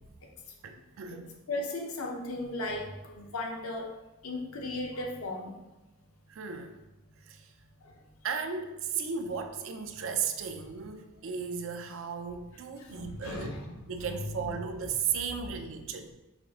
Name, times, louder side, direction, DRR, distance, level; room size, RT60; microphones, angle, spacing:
voice 1, 0.6-1.3 6.3-6.8 7.3-7.5 8.2-13.6 13.9-16.1, right 6 dB, 60° right, 6 dB, 0.4 m, -35 dB
voice 2, 1.5-3.9 4.2-5.5 7.8-7.9 12.8-13.7 14.0-14.4, left 2 dB, 70° left, 1 dB, 0.7 m, -36 dB
5.0 x 2.5 x 3.5 m, 1.0 s
head